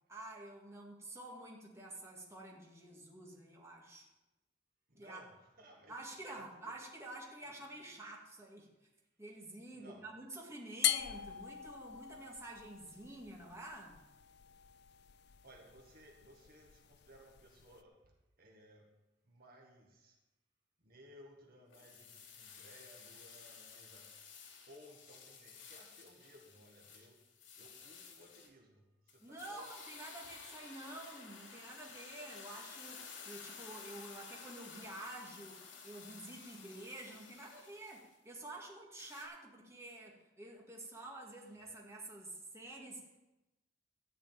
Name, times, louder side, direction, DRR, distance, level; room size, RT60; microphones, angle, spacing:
voice 1, 0.1-4.1 4.9-5.2 5.9-8.7 9.2-14.0 29.2-35.6 35.8-43.2, right 2 dB, 15° right, -3 dB, 2.1 m, -49 dB
voice 2, 4.9-5.9 6.4-6.7 7.9-8.0 9.7-10.0 15.4-18.1 18.4-18.9 19.2-20.2 20.8-24.1 24.7-27.2 27.6-29.7, equal, 50° right, 0 dB, 1.8 m, -60 dB
sound 1, 10.8-17.8, left 12 dB, 60° left, 0.4 m, -42 dB
sound 2, 21.7-28.5 29.1-38.1 39.0-39.2, left 5 dB, 80° left, 2.6 m, -53 dB
13.5 x 5.0 x 8.9 m, 1.0 s
head